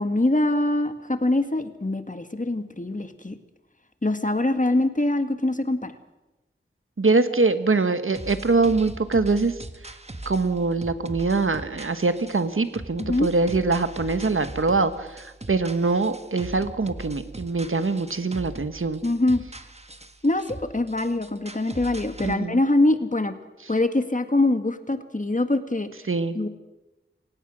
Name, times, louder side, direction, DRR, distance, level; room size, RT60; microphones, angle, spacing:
voice 1, 0.0-3.4 4.0-5.9 13.0-13.3 19.0-19.4 20.2-20.4 20.7-23.4 23.7-25.9 26.4-26.5, left 2 dB, 40° left, 9 dB, 1.8 m, -23 dB
voice 2, 7.0-9.6 10.2-19.0 22.2-22.6 26.1-26.4, right 3 dB, 85° right, 11 dB, 1.3 m, -23 dB
sound 1, 8.1-22.3, right 2 dB, 30° right, 1.5 m, -40 dB
28.0 x 16.5 x 6.2 m, 1.0 s
wide cardioid pair, 50°, 21 cm